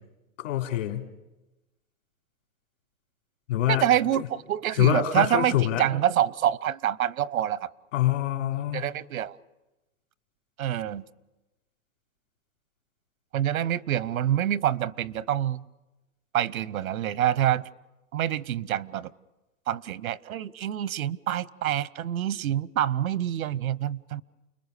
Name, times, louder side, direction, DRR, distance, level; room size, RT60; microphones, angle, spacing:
voice 1, 0.4-1.0 3.5-3.9 4.2-4.3 4.8-5.8 7.9-8.8, left 13 dB, 65° left, 3 dB, 3.4 m, -25 dB
voice 2, 3.7-7.7 8.7-9.4 10.6-11.0 13.3-15.6 16.3-17.7 18.1-19.1 19.7-24.2, right 11 dB, 90° right, 21 dB, 0.9 m, -26 dB
29.5 x 21.5 x 6.7 m, 1.0 s
hypercardioid pair, 145°, 41 cm